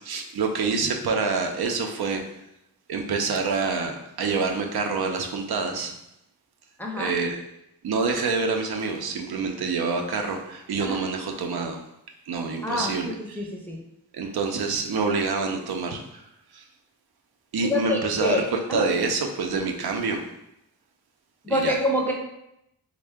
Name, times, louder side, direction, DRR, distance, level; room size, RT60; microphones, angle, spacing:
voice 1, 0.0-2.2 2.9-5.9 7.0-7.4 7.8-11.8 12.3-13.4 14.1-16.2 16.5-16.6 17.5-20.2 21.5-21.8, right 4 dB, 90° right, 3 dB, 0.6 m, -27 dB
voice 2, 6.8-7.1 10.8-11.0 12.6-12.9 13.2-13.8 17.6-18.4 18.7-18.8 21.4-22.1, left 1 dB, 5° left, -2 dB, 0.4 m, -26 dB
3.5 x 2.2 x 3.4 m, 0.82 s
wide cardioid pair, 150°, 36 cm